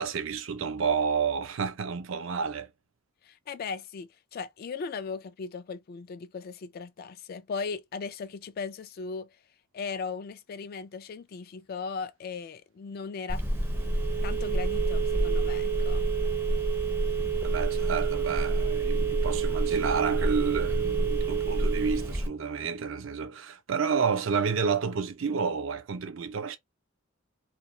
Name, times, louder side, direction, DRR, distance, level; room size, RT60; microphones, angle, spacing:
voice 1, 0.0-2.7 17.4-26.6, right 5 dB, 65° right, 0.5 m, -30 dB
voice 2, 3.2-9.3 9.7-13.4 14.2-16.1, left 5 dB, 45° left, 0.3 m, -37 dB
Telephone, 13.3-22.3, right 3 dB, 10° right, 0.5 m, -27 dB
2.3 x 2.3 x 3.0 m
head